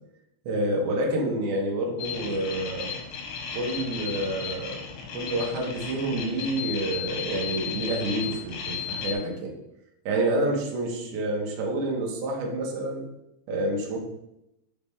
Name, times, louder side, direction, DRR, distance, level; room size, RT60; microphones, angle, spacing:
voice 1, 0.5-2.9 3.5-4.8 5.1-9.5 10.1-13.0 13.5-14.0, right 1 dB, 85° right, -2 dB, 1.7 m, -28 dB
sound 1, 2.0-9.1, left 7 dB, 75° left, 3.0 m, -35 dB
6.7 x 4.2 x 3.6 m, 0.83 s
omnidirectional pair, 5.5 m